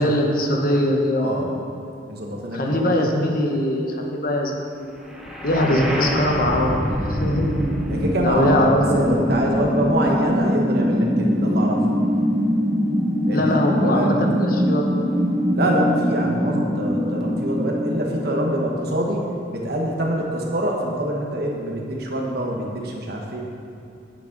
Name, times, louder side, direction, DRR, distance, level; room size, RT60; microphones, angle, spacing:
voice 1, 0.0-1.4 2.5-4.9 5.4-7.5 8.2-9.1 13.3-14.9, left 1 dB, 50° left, 1 dB, 1.0 m, -21 dB
voice 2, 1.2-1.5 2.1-3.1 5.6-5.8 7.9-11.8 13.3-14.1 15.5-23.4, right 1 dB, 60° right, -1 dB, 1.3 m, -25 dB
sound 1, 5.1-19.1, equal, 5° right, 0.9 m, -23 dB
8.7 x 8.5 x 4.0 m, 2.6 s
head